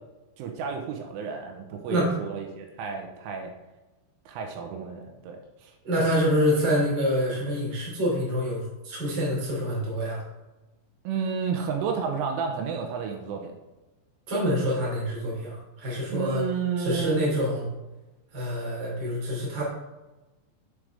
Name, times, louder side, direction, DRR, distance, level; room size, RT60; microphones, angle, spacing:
voice 1, 0.4-3.5 4.3-5.7 11.0-13.6 16.1-17.3, right 6 dB, 85° right, 3 dB, 3.3 m, -31 dB
voice 2, 5.8-10.2 14.3-16.4 16.8-17.7 18.3-19.6, equal, 30° right, -5 dB, 2.3 m, -26 dB
9.7 x 5.0 x 3.4 m, 1.1 s
omnidirectional pair, 5.7 m